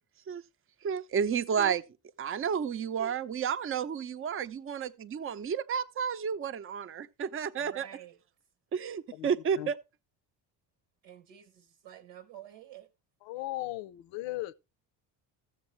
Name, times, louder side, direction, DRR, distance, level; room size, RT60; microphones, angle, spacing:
voice 1, 0.8-1.8 2.2-7.9 8.7-9.8, right 7 dB, 30° right, 0.6 m, -31 dB
voice 2, 7.6-8.2 11.0-12.9, right 11 dB, 80° right, 1.0 m, -50 dB
voice 3, 13.3-14.5, left 17 dB, 70° left, 0.7 m, -36 dB
14.0 x 7.2 x 3.1 m
supercardioid pair, 80°, 46 cm